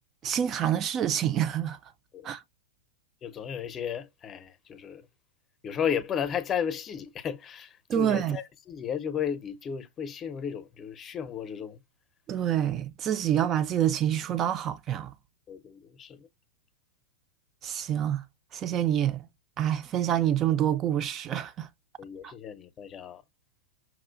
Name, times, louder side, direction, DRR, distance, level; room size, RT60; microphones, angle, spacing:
voice 1, 0.2-1.8 2.2-2.4 7.9-8.4 12.3-15.1 17.6-18.2 18.5-19.3 19.6-21.7 22.2-22.3, right 10 dB, 30° right, 0.3 m, -27 dB
voice 2, 3.2-5.1 5.6-11.8 15.5-16.3 22.0-23.2, left 8 dB, 25° left, 0.6 m, -34 dB
5.8 x 2.4 x 2.4 m
figure-of-eight pair, 100°, 0 cm